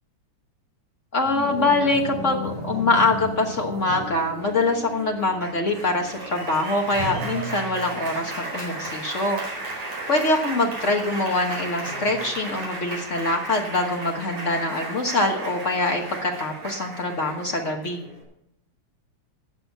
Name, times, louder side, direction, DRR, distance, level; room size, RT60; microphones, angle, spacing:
voice 1, 1.1-9.4 10.1-18.0, left 2 dB, 65° left, 2 dB, 0.7 m, -24 dB
Applause, 1.3-18.2, right 1 dB, 65° right, 5.5 m, -34 dB
16.0 x 6.4 x 6.8 m, 0.74 s
omnidirectional pair, 3.4 m